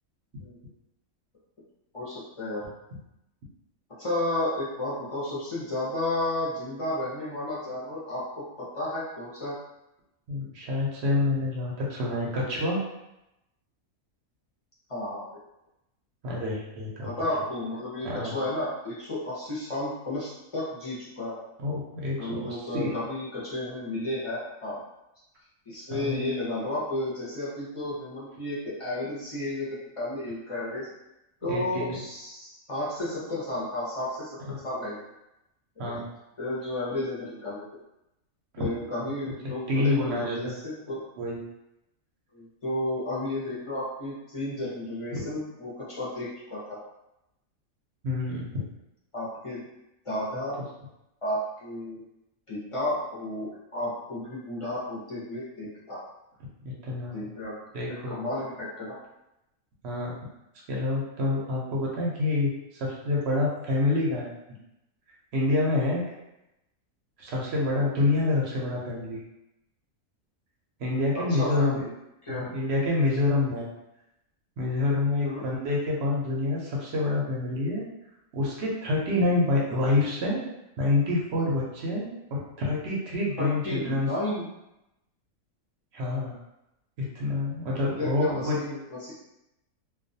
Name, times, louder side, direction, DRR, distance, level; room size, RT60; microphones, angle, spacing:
voice 1, 1.9-2.7 4.0-9.5 14.9-15.3 17.0-21.4 22.2-24.8 25.7-30.9 31.4-34.4 34.6-35.1 36.4-37.6 38.6-41.0 42.3-46.8 49.1-49.6 50.0-50.6 51.2-52.0 52.5-56.0 57.1-57.5 57.8-59.0 71.1-71.9 72.2-72.5 75.2-75.4 83.4-84.4 87.9-89.1, left 1 dB, 35° left, -8 dB, 0.5 m, -32 dB
voice 2, 10.3-12.8 16.2-17.1 18.0-18.3 21.6-22.9 25.9-26.2 31.5-32.0 34.5-34.6 35.8-36.0 38.5-38.7 39.0-39.1 39.7-40.5 41.2-41.4 45.1-45.2 48.0-48.6 50.3-50.4 56.8-57.3 57.7-58.2 59.8-60.2 60.7-64.3 65.3-66.0 67.2-69.2 70.8-71.8 72.3-73.7 74.6-77.9 78.3-80.4 80.8-84.1 85.9-86.4 87.0-88.6, left 2 dB, 60° right, -3 dB, 0.8 m, -27 dB
2.3 x 2.2 x 2.6 m, 0.90 s
omnidirectional pair, 1.4 m